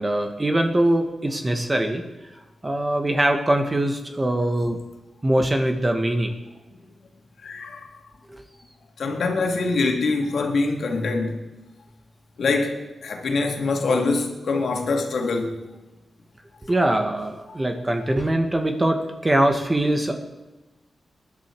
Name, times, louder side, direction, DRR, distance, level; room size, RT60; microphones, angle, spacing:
voice 1, 0.0-2.0 2.6-4.8 5.2-6.3 8.3-8.4 16.7-20.1, right 1 dB, 20° right, 5 dB, 1.7 m, -22 dB
voice 2, 7.4-8.0 9.0-11.4 12.4-15.6, left 3 dB, 75° left, 2 dB, 2.5 m, -24 dB
20.0 x 11.0 x 4.8 m, 1.1 s
cardioid pair, 70°, 0 cm